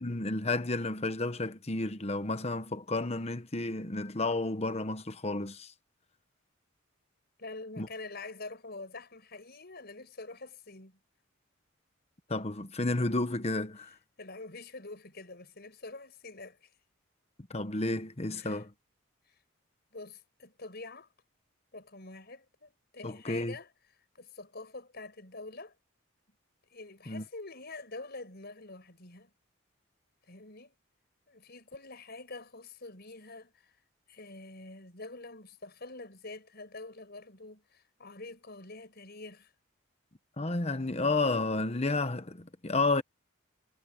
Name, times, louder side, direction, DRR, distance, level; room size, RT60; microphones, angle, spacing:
voice 1, 0.0-5.7 7.8-7.9 12.3-13.9 17.5-18.7 23.0-23.6 27.1-27.2 40.4-43.0, left 2 dB, 30° left, 1.1 m, -31 dB
voice 2, 7.4-11.0 14.2-16.7 18.3-18.6 19.3-19.4 19.9-21.1 21.7-23.7 24.1-25.7 26.7-29.3 30.2-30.7 31.3-33.7 34.1-39.5, left 3 dB, 50° left, 5.6 m, -46 dB
head